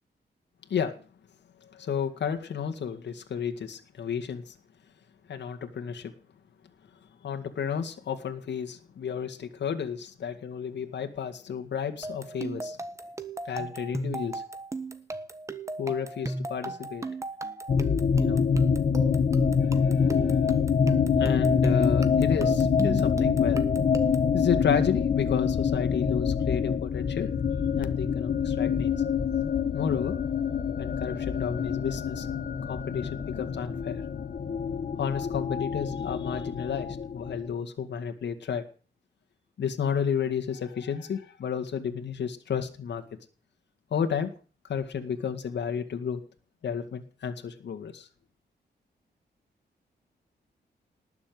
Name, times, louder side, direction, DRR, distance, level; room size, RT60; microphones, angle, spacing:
voice 1, 1.6-4.5 5.3-6.1 7.2-12.8 13.5-14.4 15.8-17.0 18.2-18.4 19.6-20.4 21.2-23.6 24.3-27.3 27.8-28.9 29.7-30.1 30.8-32.3 32.7-34.0 35.0-36.9 37.1-38.6 39.6-43.0 43.9-44.3 44.6-46.2 46.6-48.1, left 7 dB, 80° left, 5 dB, 2.1 m, -32 dB
sound 1, 12.0-24.3, right 2 dB, 15° right, 1.4 m, -35 dB
sound 2, 17.7-37.5, left 6 dB, 50° left, 1.1 m, -26 dB
19.5 x 7.1 x 9.5 m, 0.40 s
wide cardioid pair, 150°, 18 cm